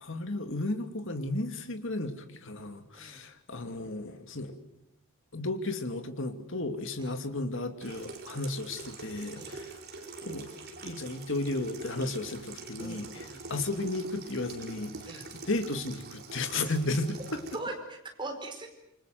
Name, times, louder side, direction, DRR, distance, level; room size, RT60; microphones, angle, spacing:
voice 1, 0.0-4.5 5.3-9.7 10.2-10.5 10.8-17.4, left 2 dB, 60° left, 7 dB, 2.6 m, -34 dB
Water tap faucet / Sink (filling or washing), 7.8-17.6, right 3 dB, 45° right, 4.8 m, -45 dB
voice 2, 12.8-13.4 15.0-15.2 16.5-16.6 17.5-18.7, right 2 dB, 20° right, 3 dB, 4.9 m, -40 dB
27.5 x 24.5 x 7.8 m, 0.85 s
head